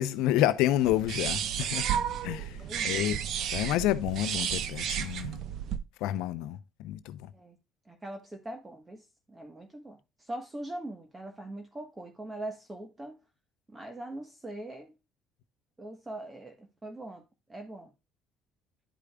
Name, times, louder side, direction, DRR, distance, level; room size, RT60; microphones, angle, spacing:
voice 1, 0.0-1.9 2.2-3.2 3.5-5.4 6.0-7.3, left 13 dB, 85° left, 0.6 m, -29 dB
sound 1, 0.8-5.8, right 9 dB, 60° right, 0.9 m, -32 dB
voice 2, 2.7-3.1 7.3-7.6 7.9-9.0 9.3-10.0 10.3-13.2 13.7-14.9 15.8-17.2 17.5-17.9, right 1 dB, 15° right, 1.2 m, -41 dB
12.0 x 5.0 x 2.3 m
cardioid pair, 110°, 0 cm